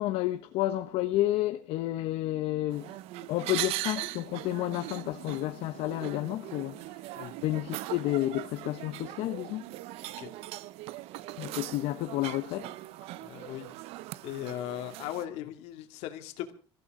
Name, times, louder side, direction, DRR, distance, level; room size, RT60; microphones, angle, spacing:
voice 1, 0.0-3.0 3.3-9.7 11.4-12.7, left 15 dB, 70° left, 0.9 m, -31 dB
sound 1, 2.7-15.3, right 16 dB, 75° right, 0.7 m, -40 dB
voice 2, 13.2-13.7 14.2-16.5, left 12 dB, 85° left, 2.6 m, -38 dB
24.0 x 15.0 x 3.8 m
cardioid pair, 160°, 10 cm